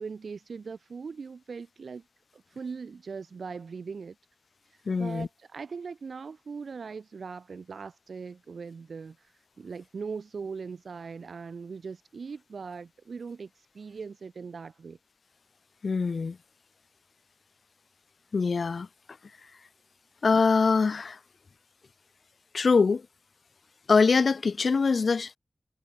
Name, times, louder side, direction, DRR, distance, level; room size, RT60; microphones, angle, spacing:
voice 1, 0.0-2.0 2.3-4.2 4.7-15.0, right 5 dB, 85° right, 3.6 m, -40 dB
voice 2, 4.9-5.3 15.8-16.4 18.3-18.9 20.2-21.2 22.5-23.0 23.9-25.4, left 4 dB, 70° left, 0.7 m, -23 dB
wide cardioid pair, 100°, 0 cm